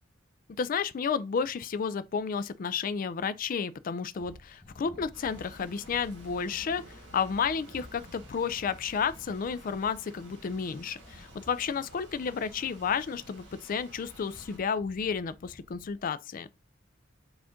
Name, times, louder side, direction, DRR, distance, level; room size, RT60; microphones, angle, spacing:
voice 1, 0.6-16.5, left 6 dB, 45° left, 0.3 m, -32 dB
sound 1, 4.1-6.5 7.6-10.0 10.9-13.3 13.8-16.2, left 1 dB, 5° left, 1.4 m, -54 dB
sound 2, 5.1-14.6, right 1 dB, 65° right, 1.8 m, -51 dB
4.9 x 2.5 x 3.6 m
head